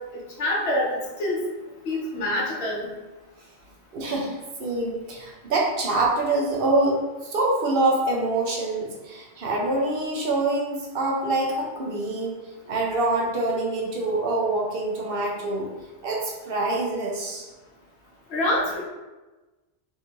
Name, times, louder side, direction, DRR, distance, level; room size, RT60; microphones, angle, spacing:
voice 1, 0.1-1.4 1.8-2.9 18.3-18.8, left 1 dB, 70° left, -3 dB, 1.0 m, -26 dB
voice 2, 3.9-12.4 12.7-15.7 16.0-17.4, right 2 dB, 60° right, -2 dB, 0.8 m, -25 dB
3.4 x 2.7 x 2.9 m, 1.1 s
omnidirectional pair, 1.2 m